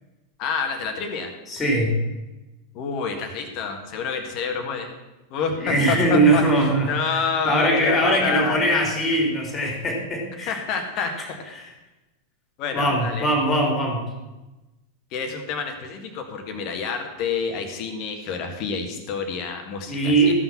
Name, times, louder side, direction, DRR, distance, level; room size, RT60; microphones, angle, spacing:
voice 1, 0.4-1.3 2.7-4.9 5.3-8.7 10.5-11.1 11.6-11.8 12.6-13.3 15.1-20.3, left 5 dB, 40° left, 5 dB, 1.8 m, -28 dB
voice 2, 1.5-2.0 5.6-6.9 7.4-10.6 11.0-11.1 12.7-14.0 19.9-20.3, right 1 dB, 20° left, 1 dB, 3.3 m, -21 dB
14.5 x 5.8 x 6.0 m, 1.1 s
figure-of-eight pair, 90°, 0 cm